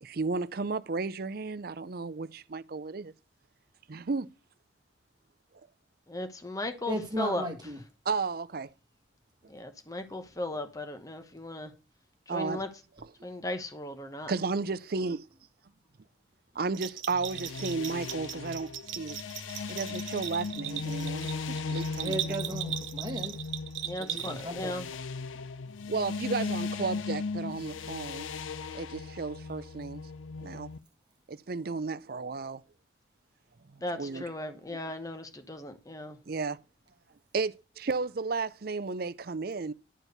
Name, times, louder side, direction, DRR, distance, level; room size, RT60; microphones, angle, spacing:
voice 1, 0.0-3.1 3.9-4.3 8.1-8.7 12.3-12.6 13.0-13.1 14.3-15.2 16.6-18.7 19.0-19.2 19.7-22.4 25.9-28.3 28.7-30.0 30.4-30.7 31.3-32.6 33.9-34.3 34.7-34.8 36.3-36.6 37.3-39.7, right 4 dB, 50° right, 0.5 m, -33 dB
voice 2, 6.1-7.5 9.5-11.7 12.3-12.7 13.2-14.3 23.8-24.9 33.8-36.2, left 1 dB, 15° left, 1.0 m, -36 dB
voice 3, 6.9-7.8 22.0-23.4 24.0-24.8, right 1 dB, 20° right, 1.6 m, -35 dB
Bell, 16.7-24.6, right 11 dB, 80° right, 1.2 m, -38 dB
sound 1, 17.1-30.8, left 4 dB, 90° left, 0.6 m, -37 dB
11.0 x 4.6 x 6.6 m
head